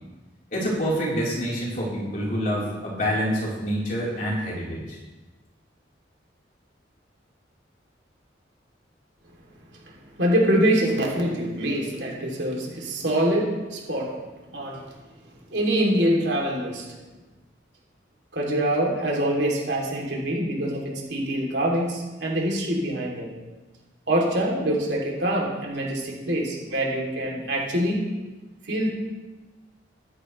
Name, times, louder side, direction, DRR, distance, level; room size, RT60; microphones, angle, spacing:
voice 1, 0.5-5.0, equal, 45° left, -5 dB, 3.9 m, -27 dB
voice 2, 10.2-14.1 14.5-14.8 15.5-16.9 18.3-23.3 24.1-28.0 28.7-28.9, right 1 dB, 65° right, -2 dB, 2.9 m, -24 dB
15.0 x 10.5 x 3.2 m, 1.2 s
head